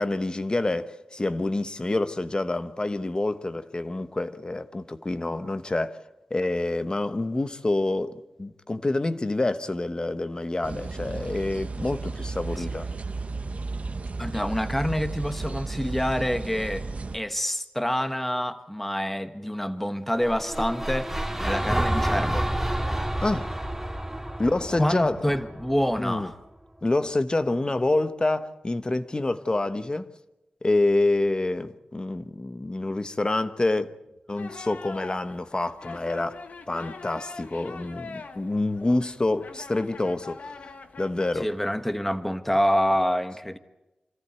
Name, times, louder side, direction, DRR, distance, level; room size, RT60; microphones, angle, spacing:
voice 1, 0.0-6.0 6.3-12.9 23.2-23.5 24.4-25.3 26.0-26.3 26.8-30.1 30.6-33.9 34.3-36.4 36.7-40.5 41.0-41.5, left 2 dB, 30° left, 1.1 m, -27 dB
sound 1, 10.6-17.2, right 3 dB, 60° right, 1.2 m, -34 dB
voice 2, 14.2-16.9 17.1-22.5 24.8-26.3 41.4-43.6, equal, 10° left, 1.3 m, -27 dB
sound 2, 20.2-26.3, right 1 dB, 10° right, 1.9 m, -29 dB
sound 3, 34.4-41.4, left 4 dB, 75° left, 1.4 m, -43 dB
26.0 x 14.0 x 8.1 m
cardioid pair, 55°, 3 cm